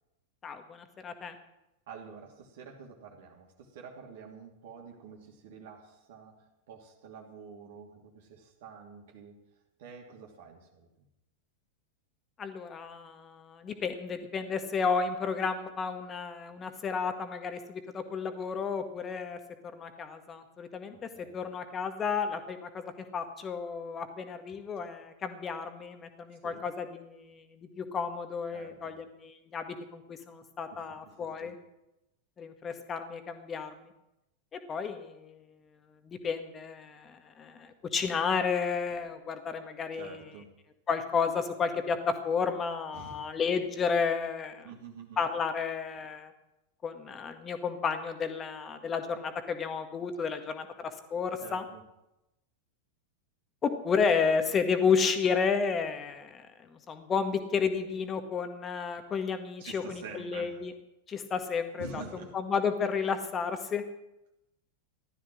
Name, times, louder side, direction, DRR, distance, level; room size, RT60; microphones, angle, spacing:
voice 1, 0.4-1.4 12.4-19.4 19.7-31.6 32.4-33.9 34.7-35.4 36.0-40.2 40.9-44.7 45.2-46.3 46.8-51.6 53.6-60.7 61.1-62.0 62.3-63.8, left 5 dB, 25° left, 7 dB, 1.8 m, -32 dB
voice 2, 1.9-9.4 9.8-10.9 20.9-21.4 26.4-26.6 28.5-29.0 30.7-31.5 39.9-40.6 42.9-43.2 44.6-45.2 51.4-51.8 59.6-60.6 61.8-62.3, right 5 dB, 55° right, 0 dB, 2.8 m, -48 dB
15.5 x 13.0 x 6.3 m, 0.92 s
figure-of-eight pair, 90°, 0 cm